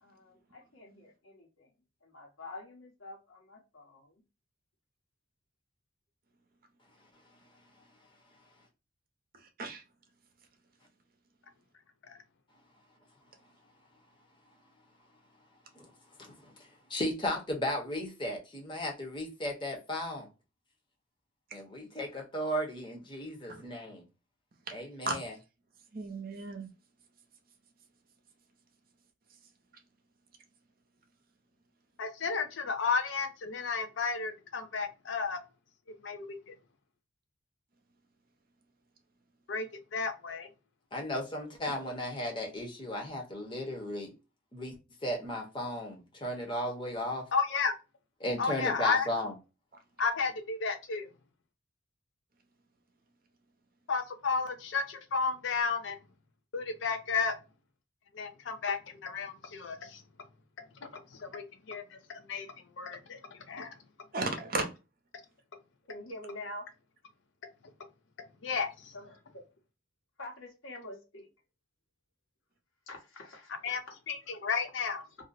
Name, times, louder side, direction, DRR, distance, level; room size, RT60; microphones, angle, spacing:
voice 1, 0.0-1.7 2.0-4.2 65.9-66.7 68.9-69.4 70.2-71.3 72.9-73.6, left 1 dB, 90° left, 1.1 m, -46 dB
voice 2, 9.4-9.8 23.5-23.6 25.1-25.2 25.9-26.7 64.1-64.7, right 3 dB, 45° right, 0.6 m, -34 dB
voice 3, 16.2-20.3 21.5-24.0 24.7-25.3 40.9-44.1 44.5-47.3 48.2-49.3, left 1 dB, 25° left, 0.8 m, -35 dB
voice 4, 32.0-35.4 36.0-36.6 39.5-39.7 39.9-40.5 47.3-47.7 48.4-49.1 50.0-51.1 53.9-56.0 56.5-57.3 58.1-60.0 60.8-62.5 62.8-63.7 68.4-68.9 73.6-73.8 74.1-75.0, left 5 dB, 70° left, 0.5 m, -32 dB
2.6 x 2.1 x 3.9 m
head